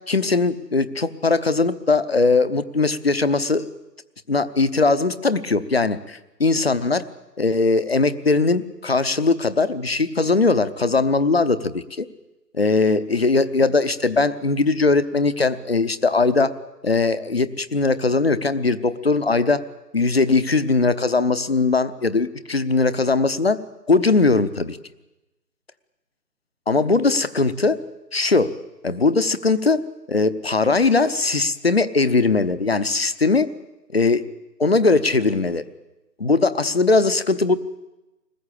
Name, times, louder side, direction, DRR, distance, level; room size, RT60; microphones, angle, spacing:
voice 1, 0.1-3.7 4.3-7.1 7.4-12.1 12.5-16.5 16.8-19.6 19.9-23.6 23.9-24.8 26.7-27.8 28.1-28.5 28.8-29.8 30.1-33.5 33.9-34.2 34.6-35.6 36.2-37.6, left 3 dB, 40° left, 14 dB, 0.9 m, -20 dB
22.0 x 20.0 x 8.6 m, 1.0 s
figure-of-eight pair, 155°, 50 cm